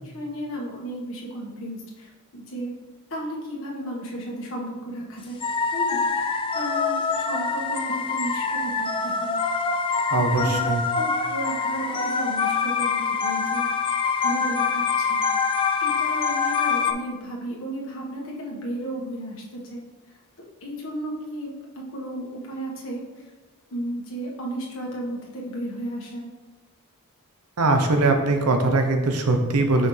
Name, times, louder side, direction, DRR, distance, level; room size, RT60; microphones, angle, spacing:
voice 1, 0.0-2.7 3.1-5.4 5.7-9.4 10.1-10.6 10.9-13.7 14.1-15.2 15.8-19.8 20.6-23.0 23.7-26.3, right 1 dB, 65° left, -3 dB, 1.4 m, -34 dB
sound 1, 5.4-16.9, left 5 dB, 25° left, 0.3 m, -25 dB
voice 2, 10.1-10.8 27.6-29.9, right 2 dB, 90° right, 5 dB, 0.8 m, -21 dB
5.7 x 5.3 x 3.3 m, 1.2 s
head